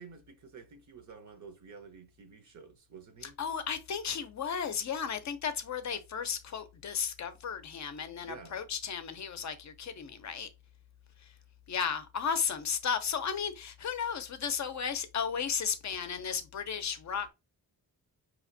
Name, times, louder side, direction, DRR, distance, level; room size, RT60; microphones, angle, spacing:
voice 1, 0.0-3.4 8.2-8.6, right 5 dB, 50° right, 0.8 m, -50 dB
voice 2, 3.2-10.5 11.2-11.3 11.7-17.3, left 7 dB, 50° left, 0.5 m, -34 dB
4.9 x 2.8 x 2.6 m
wide cardioid pair, 170°, 36 cm